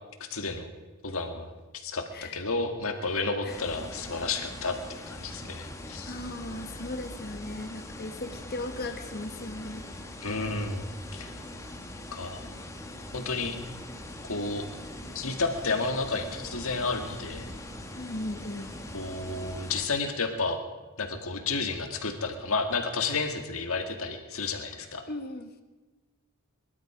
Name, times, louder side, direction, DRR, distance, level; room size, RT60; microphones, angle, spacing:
voice 1, 0.2-0.7 1.0-4.8 5.1-6.1 10.2-11.3 12.1-12.4 13.1-13.6 14.3-14.6 15.1-17.5 18.9-20.6 21.0-25.0, left 3 dB, 70° left, 5 dB, 2.0 m, -31 dB
sound 1, 3.5-19.9, left 1 dB, 15° left, 1.3 m, -42 dB
voice 2, 6.0-9.9 15.0-15.1 17.9-18.7 25.1-25.6, left 2 dB, 45° left, 7 dB, 1.4 m, -37 dB
23.0 x 12.5 x 5.0 m, 1.2 s
head